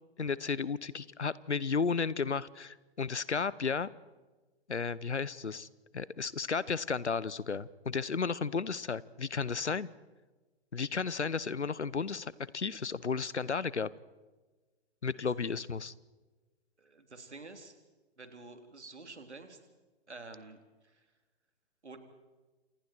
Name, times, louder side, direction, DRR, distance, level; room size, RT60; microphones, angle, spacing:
voice 1, 0.2-3.9 4.7-5.7 5.9-9.9 10.7-13.9 15.0-15.9, left 5 dB, 80° left, 20 dB, 1.0 m, -33 dB
voice 2, 16.8-17.7 18.2-19.6 20.1-21.0 21.8-22.0, right 3 dB, 80° right, 6 dB, 3.6 m, -49 dB
29.5 x 28.0 x 4.6 m, 1.2 s
figure-of-eight pair, 115°, 34 cm